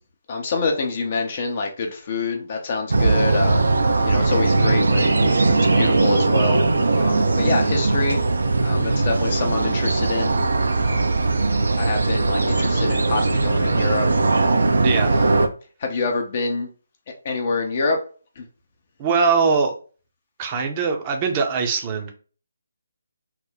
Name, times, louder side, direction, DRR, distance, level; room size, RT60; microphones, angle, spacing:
voice 1, 0.3-3.6 4.0-5.3 5.7-6.6 7.0-8.2 8.6-10.3 10.8-11.1 11.8-14.1 15.1-15.4 15.8-16.7 17.2-18.0 18.4-18.5, left 3 dB, 40° left, 3 dB, 0.6 m, -26 dB
sound 1, 2.9-15.5, right 3 dB, 70° right, 0.5 m, -19 dB
voice 2, 14.8-15.2 19.0-19.7 20.4-22.1, right 5 dB, 25° right, 4 dB, 0.6 m, -21 dB
2.9 x 2.1 x 3.8 m, 0.38 s
figure-of-eight pair, 150°, 0 cm